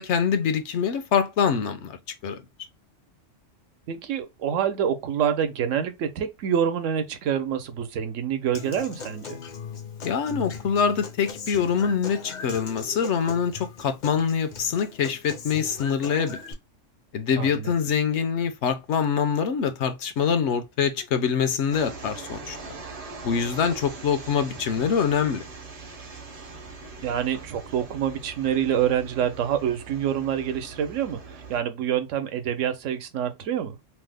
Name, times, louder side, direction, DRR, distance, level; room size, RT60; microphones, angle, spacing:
voice 1, 0.0-2.0 2.2-2.4 10.0-16.4 17.1-22.6 23.2-25.4, left 7 dB, 70° left, 0.9 m, -24 dB
voice 2, 3.9-9.4 17.4-17.7 27.0-33.8, right 9 dB, 80° right, 1.0 m, -26 dB
Human voice / Acoustic guitar, 8.5-16.5, left 5 dB, 50° left, 0.6 m, -39 dB
sound 1, 21.7-31.6, right 4 dB, 50° right, 0.4 m, -41 dB
3.1 x 2.0 x 3.3 m
omnidirectional pair, 1.3 m